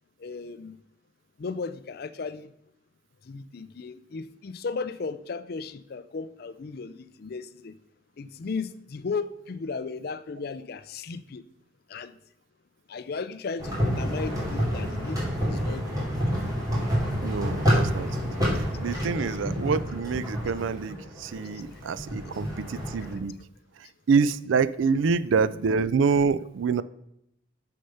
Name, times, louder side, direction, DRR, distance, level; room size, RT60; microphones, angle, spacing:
voice 1, 0.2-0.8 1.4-2.5 3.3-7.7 8.2-11.4 11.9-12.1 12.9-15.9 18.9-19.4 19.6-19.7, left 4 dB, 50° left, 14 dB, 0.4 m, -35 dB
sound 1, 13.6-23.1, equal, 20° right, 2.8 m, -28 dB
voice 2, 17.2-18.3 18.5-23.3 24.1-26.8, right 5 dB, 75° right, 17 dB, 0.4 m, -26 dB
6.7 x 6.4 x 5.7 m, 0.78 s
head